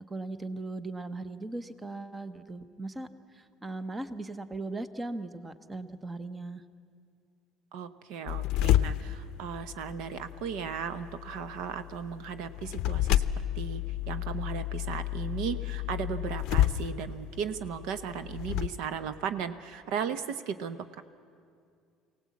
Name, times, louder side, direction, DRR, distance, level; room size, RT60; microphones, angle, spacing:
voice 1, 0.1-6.6, right 2 dB, 10° right, 12 dB, 0.7 m, -38 dB
voice 2, 7.7-13.2 13.5-21.0, right 7 dB, 65° right, 12 dB, 0.7 m, -36 dB
sound 1, 8.3-18.7, left 13 dB, 55° left, 0.6 m, -31 dB
24.5 x 17.5 x 8.4 m, 2.3 s
cardioid pair, 170°, 0 cm